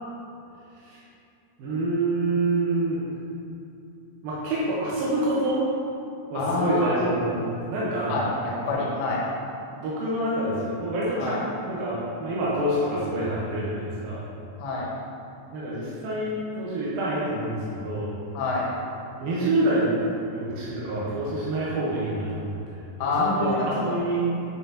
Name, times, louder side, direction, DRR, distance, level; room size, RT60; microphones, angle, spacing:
voice 1, 1.6-3.1 4.2-5.6 6.3-8.2 9.7-11.3 11.6-14.2 15.5-18.1 19.2-19.9 20.3-24.2, right 1 dB, 75° right, -8 dB, 2.1 m, -27 dB
voice 2, 6.4-7.0 8.1-9.2 11.2-11.4 14.6-14.9 18.3-18.7 23.0-24.0, left 3 dB, 90° left, -4 dB, 3.7 m, -27 dB
9.5 x 5.9 x 2.8 m, 2.6 s
omnidirectional pair, 5.6 m